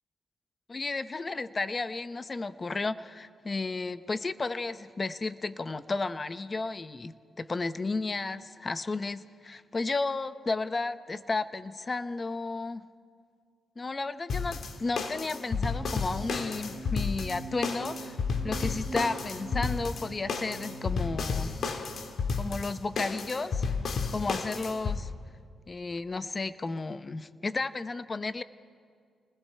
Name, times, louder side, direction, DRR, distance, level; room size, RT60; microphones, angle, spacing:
voice 1, 0.7-12.8 13.8-18.2 18.4-21.6 22.4-23.7 24.1-25.1 25.7-28.4, left 3 dB, 30° left, 13 dB, 0.7 m, -33 dB
sound 1, 14.3-25.0, left 5 dB, 65° left, 1.7 m, -32 dB
sound 2, 15.7-21.4, right 3 dB, 50° right, 1.8 m, -45 dB
29.5 x 20.5 x 4.5 m, 2.2 s
cardioid pair, 95°, 0 cm